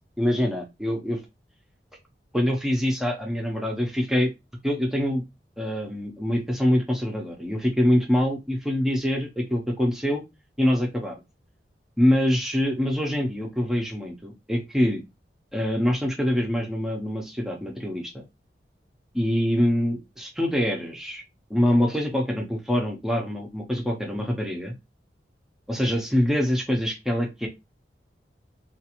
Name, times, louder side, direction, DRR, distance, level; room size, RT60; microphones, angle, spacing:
voice 1, 0.2-1.2 2.3-4.3 4.6-5.2 5.6-10.2 10.6-11.2 12.0-15.0 15.5-18.1 19.1-21.2 21.5-24.7 25.7-27.5, equal, 5° right, 1 dB, 0.5 m, -24 dB
2.4 x 2.4 x 2.8 m, 0.23 s
head